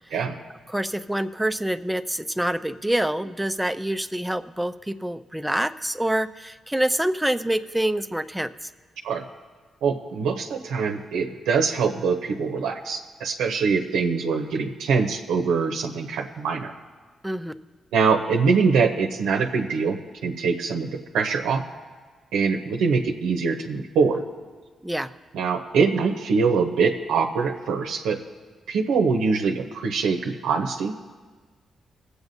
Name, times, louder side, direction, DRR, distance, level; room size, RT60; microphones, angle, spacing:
voice 1, 0.7-8.7 17.2-17.5 24.8-25.1, right 1 dB, 5° right, 9 dB, 0.5 m, -26 dB
voice 2, 9.8-16.7 17.9-21.6 22.3-24.2 25.3-28.2 28.7-31.0, right 5 dB, 90° right, 3 dB, 0.7 m, -23 dB
22.5 x 8.0 x 2.7 m, 1.4 s
cardioid pair, 70°, 0 cm